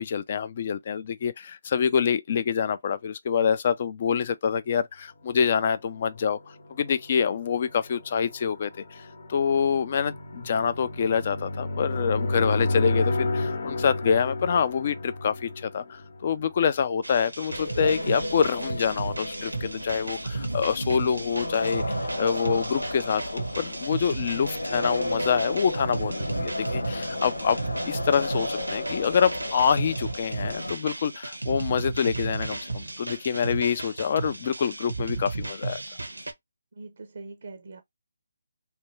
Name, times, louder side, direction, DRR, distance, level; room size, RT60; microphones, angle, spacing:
voice 1, 0.0-6.4 6.7-8.7 9.0-9.1 9.3-21.8 22.2-27.6 27.9-35.8, left 7 dB, 40° left, 0.4 m, -26 dB
sound 1, 5.9-16.7, left 2 dB, 60° left, 0.8 m, -32 dB
sound 2, 17.0-36.3, right 3 dB, 85° right, 0.8 m, -34 dB
sound 3, 17.5-30.7, left 1 dB, 85° left, 1.0 m, -33 dB
voice 2, 36.7-37.8, right 3 dB, 60° right, 0.6 m, -42 dB
3.3 x 2.2 x 3.0 m
figure-of-eight pair, 150°, 0 cm